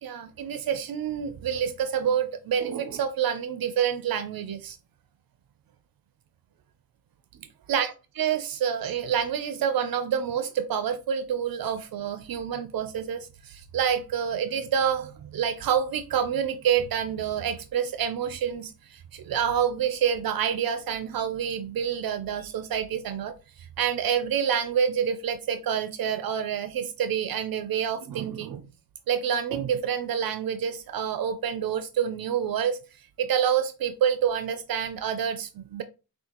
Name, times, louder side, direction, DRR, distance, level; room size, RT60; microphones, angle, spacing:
voice 1, 0.0-4.8 7.7-28.6 29.1-32.8 33.2-35.8, right 8 dB, 80° right, 0.5 m, -27 dB
6.2 x 2.4 x 2.9 m
wide cardioid pair, 130°, 35 cm